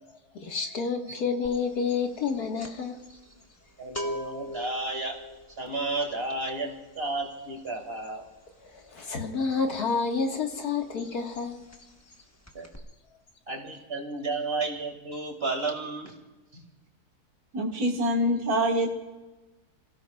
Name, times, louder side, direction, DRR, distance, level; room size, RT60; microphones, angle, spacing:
voice 1, 0.3-3.0 8.6-11.6, left 5 dB, 70° left, 2 dB, 2.2 m, -29 dB
sound 1, 1.4-1.7 2.0-10.6 10.8-11.1 11.3-12.2 12.4-12.8, equal, 10° left, 1.1 m, -41 dB
voice 2, 3.8-5.2 5.6-8.3 12.5-12.7 13.5-16.2 16.5-16.6, right 3 dB, 40° right, 3 dB, 2.4 m, -32 dB
voice 3, 17.5-18.9, equal, 65° right, 0 dB, 2.2 m, -25 dB
28.0 x 16.5 x 2.4 m, 1.1 s
omnidirectional pair, 1.7 m